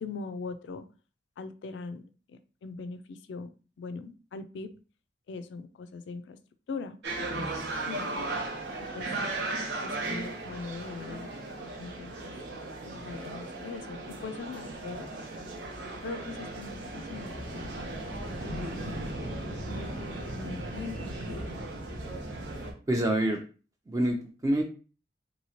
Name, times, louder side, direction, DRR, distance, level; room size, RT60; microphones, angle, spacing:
voice 1, 0.0-0.9 1.4-2.0 2.3-3.5 3.8-4.7 5.3-6.4 6.7-7.5 7.9-8.1 8.9-9.1 9.8-11.3 11.6-12.3 12.8-15.1 16.0-18.2 18.4-19.1 19.7-21.4, left 4 dB, 85° left, 11 dB, 0.3 m, -41 dB
sound 1, 7.0-22.7, right 2 dB, 75° right, 0.8 m, -36 dB
voice 2, 22.9-23.4 23.9-24.6, right 1 dB, 20° right, 2 dB, 0.3 m, -26 dB
3.0 x 2.7 x 2.8 m, 0.36 s
head